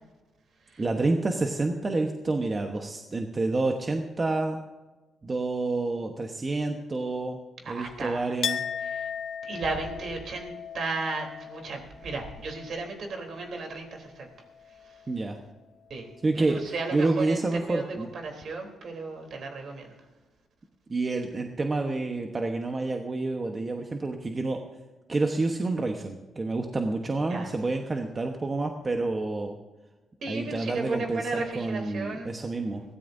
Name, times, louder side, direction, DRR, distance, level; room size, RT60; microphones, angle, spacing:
voice 1, 0.8-4.6 5.2-7.4 7.7-8.6 15.1-15.4 16.2-18.1 20.9-24.6 25.1-29.5 30.3-32.8, right 2 dB, 25° right, 3 dB, 1.1 m, -28 dB
voice 2, 7.6-8.4 8.8-9.1 9.4-14.3 14.8-15.0 15.9-20.0 27.3-27.5 30.2-32.3, right 3 dB, 55° right, 3 dB, 3.4 m, -35 dB
Chink clink, 8.4-13.9 14.2-15.1, left 7 dB, 55° left, 0.6 m, -37 dB
22.5 x 16.5 x 2.7 m, 1.2 s
cardioid pair, 120°, 0 cm